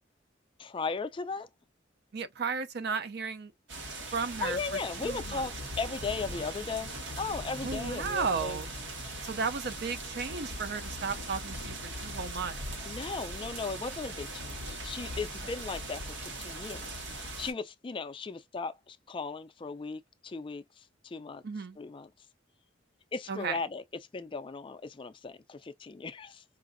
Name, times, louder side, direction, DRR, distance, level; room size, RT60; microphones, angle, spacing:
voice 1, 0.6-1.5 4.0-8.6 9.1-9.3 12.8-21.4 21.8-22.1 23.1-23.8 24.1-26.4, left 4 dB, 25° left, 0.4 m, -37 dB
voice 2, 2.1-3.5 4.1-4.6 5.0-5.4 7.6-8.7 9.2-12.6 21.4-21.8 23.3-23.6, right 5 dB, 55° right, 0.5 m, -34 dB
sound 1, 3.7-17.5, right 1 dB, 80° right, 1.5 m, -40 dB
4.8 x 2.5 x 2.5 m
head